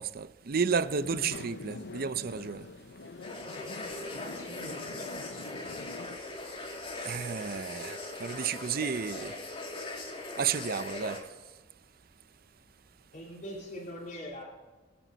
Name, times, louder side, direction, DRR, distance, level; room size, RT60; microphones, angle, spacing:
voice 1, 0.0-2.7 7.0-9.3 10.4-11.3, right 6 dB, 55° right, 0.6 m, -32 dB
sound 1, 1.0-6.2, left 3 dB, 65° left, 0.6 m, -44 dB
sound 2, 3.2-11.2, left 2 dB, 30° left, 2.6 m, -40 dB
voice 2, 4.0-5.1 13.1-14.4, equal, 45° left, 3.1 m, -42 dB
25.5 x 9.1 x 4.0 m
head